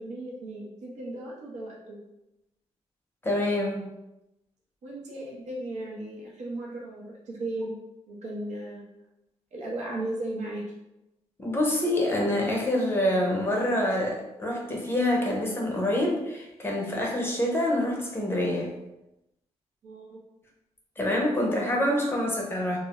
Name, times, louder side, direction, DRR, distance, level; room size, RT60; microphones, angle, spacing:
voice 1, 0.0-2.0 4.8-7.7 8.1-8.9 9.5-10.6 19.8-20.2, right 1 dB, 80° right, -3 dB, 0.6 m, -36 dB
voice 2, 3.2-3.9 11.4-18.7 21.0-22.8, left 1 dB, 20° left, -1 dB, 0.5 m, -26 dB
2.4 x 2.0 x 2.9 m, 0.91 s
wide cardioid pair, 115°, 12 cm